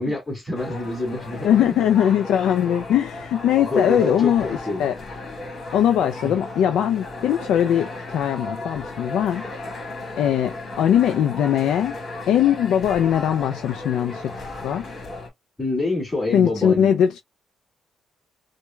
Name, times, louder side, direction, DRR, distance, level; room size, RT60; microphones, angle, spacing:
voice 1, 0.0-1.6 3.7-4.8 6.2-6.4 15.6-17.0, left 2 dB, 10° left, 2.6 m, -26 dB
sound 1, 0.5-15.3, left 2 dB, 45° left, 1.8 m, -35 dB
voice 2, 1.4-4.5 4.8-4.9 5.7-9.5 10.2-12.0 12.3-14.3 14.6-14.8 16.3-17.2, left 9 dB, 80° left, 0.3 m, -20 dB
4.6 x 2.2 x 2.3 m
cardioid pair, 90°, 0 cm